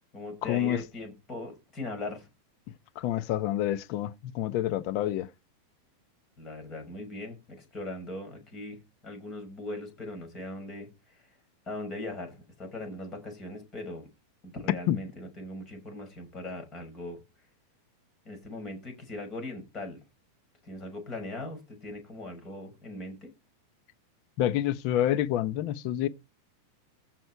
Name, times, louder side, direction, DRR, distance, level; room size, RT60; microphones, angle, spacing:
voice 1, 0.1-2.3 6.4-11.4 11.7-14.1 14.4-17.5 18.2-20.0 20.6-23.3, left 2 dB, 25° left, 6.0 m, -40 dB
voice 2, 2.9-5.3 14.9-15.0 24.4-26.1, left 12 dB, 45° left, 0.9 m, -28 dB
15.0 x 6.1 x 4.6 m
supercardioid pair, 160°, 0 cm